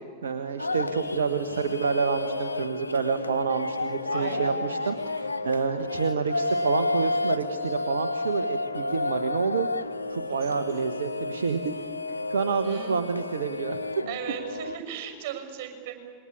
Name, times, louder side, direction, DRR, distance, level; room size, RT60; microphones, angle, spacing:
voice 1, 0.2-11.7 12.1-13.8, right 5 dB, 65° right, 8 dB, 1.2 m, -28 dB
sound 1, 0.6-14.8, left 2 dB, 80° left, 0.6 m, -31 dB
voice 2, 4.1-4.8 10.3-10.7 12.6-13.2 14.1-15.9, right 10 dB, 45° right, 6 dB, 6.2 m, -38 dB
27.5 x 22.0 x 8.7 m, 2.1 s
figure-of-eight pair, 90°, 0 cm